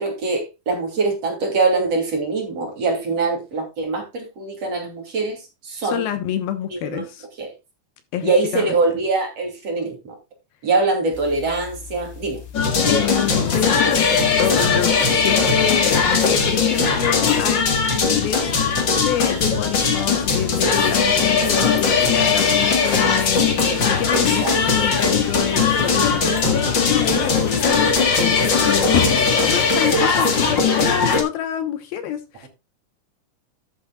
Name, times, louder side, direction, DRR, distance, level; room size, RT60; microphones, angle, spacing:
voice 1, 0.0-6.0 6.7-7.1 7.4-7.5 8.2-10.2 10.6-12.4 24.1-24.6, right 3 dB, 40° right, 3.4 m, -23 dB
voice 2, 5.8-7.3 8.1-8.7 12.9-32.5, left 10 dB, 70° left, 2.8 m, -27 dB
sound 1, 11.1-29.6, left 8 dB, 85° left, 4.6 m, -35 dB
sound 2, 12.5-31.2, left 5 dB, 45° left, 1.5 m, -19 dB
12.5 x 8.6 x 2.3 m
omnidirectional pair, 4.7 m